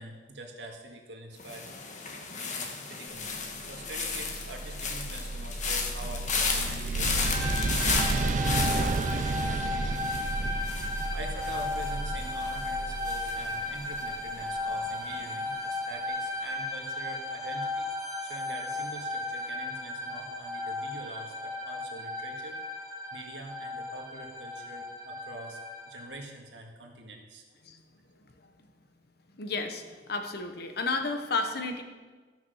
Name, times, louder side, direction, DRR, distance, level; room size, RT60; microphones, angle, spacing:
voice 1, 0.0-1.6 2.3-9.9 10.3-10.8 11.1-17.9 18.2-22.6 23.1-25.6 25.9-27.4, right 2 dB, 75° right, 2 dB, 1.8 m, -45 dB
sound 1, 1.4-14.4 14.7-15.1, left 4 dB, 45° left, 1.3 m, -35 dB
sound 2, 3.8-14.6, right 2 dB, 45° right, 0.4 m, -32 dB
sound 3, 7.2-26.1, left 2 dB, 20° right, 1.5 m, -35 dB
voice 2, 29.4-29.8 30.1-31.8, left 3 dB, 60° left, 6 dB, 1.1 m, -31 dB
13.5 x 6.1 x 6.4 m, 1.4 s
head